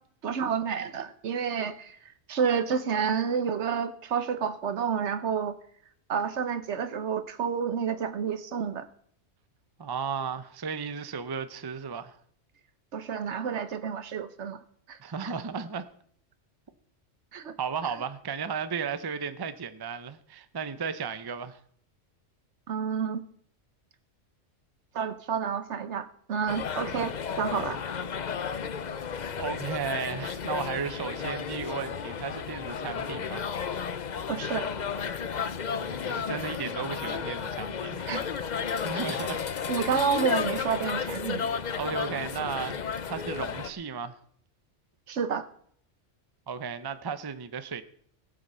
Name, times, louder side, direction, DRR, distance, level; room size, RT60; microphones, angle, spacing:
voice 1, 0.2-2.0 2.3-5.5 6.1-8.9 12.9-14.6 14.9-15.0 15.2-15.3 17.3-17.5 22.7-23.2 24.9-27.8 34.3-34.7 38.1-38.5 39.7-41.5 45.1-45.5, right 7 dB, 70° right, 1.2 m, -29 dB
voice 2, 9.8-12.2 15.0-15.9 17.6-21.6 29.4-33.6 35.7-38.1 38.7-39.4 41.8-42.8 43.1-44.2 46.5-47.8, right 6 dB, 25° right, 0.6 m, -34 dB
sound 1, 26.5-43.7, left 6 dB, 45° left, 0.7 m, -33 dB
18.0 x 7.9 x 5.5 m
omnidirectional pair, 1.3 m